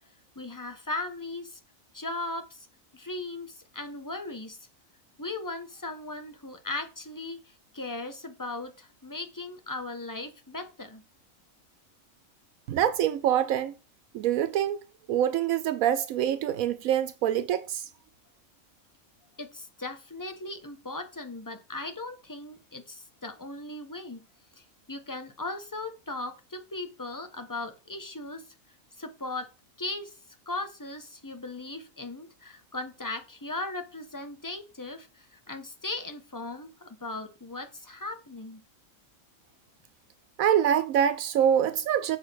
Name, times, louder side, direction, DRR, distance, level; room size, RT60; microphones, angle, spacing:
voice 1, 0.3-1.6 1.9-2.7 2.9-4.7 5.2-11.0 19.4-24.2 24.6-28.4 29.0-29.5 29.8-30.2 30.5-38.6, left 2 dB, 15° left, 1.2 m, -38 dB
voice 2, 12.7-13.7 14.1-14.8 15.1-17.9 40.4-42.2, right 10 dB, 80° right, 1.1 m, -25 dB
7.5 x 5.0 x 6.3 m
omnidirectional pair, 1.4 m